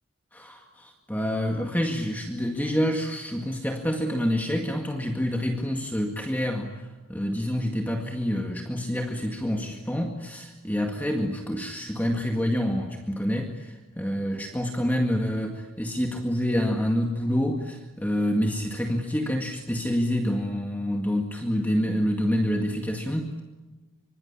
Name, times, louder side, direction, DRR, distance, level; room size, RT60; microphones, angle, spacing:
voice 1, 0.3-23.3, equal, 10° left, 2 dB, 1.9 m, -27 dB
26.0 x 25.0 x 8.7 m, 1.2 s
head